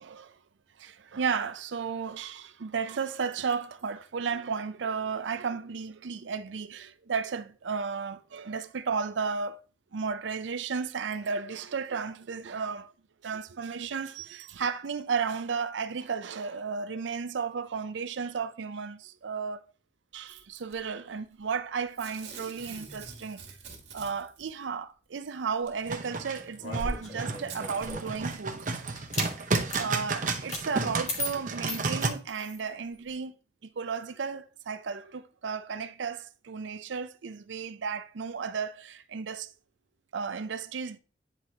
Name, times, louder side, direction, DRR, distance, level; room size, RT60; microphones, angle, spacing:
voice 1, 0.0-0.3 0.8-9.6 9.9-12.9 13.2-19.6 20.1-23.4 23.9-28.9 29.8-33.3 33.6-39.5 40.1-41.0, right 5 dB, 85° right, 0.5 m, -34 dB
Packing tape duct tape / Tearing, 20.3-20.7 21.9-24.5 25.7-25.8 26.7-26.8 27.4-27.6 28.3-28.4, right 5 dB, 70° right, 1.9 m, -46 dB
sound 1, 25.9-32.1, right 3 dB, 45° right, 0.8 m, -32 dB
sound 2, 26.6-28.2 28.9-29.3 29.7-29.9 30.5-30.6 31.1-32.6, left 1 dB, 40° left, 1.6 m, -36 dB
9.7 x 4.6 x 2.8 m
head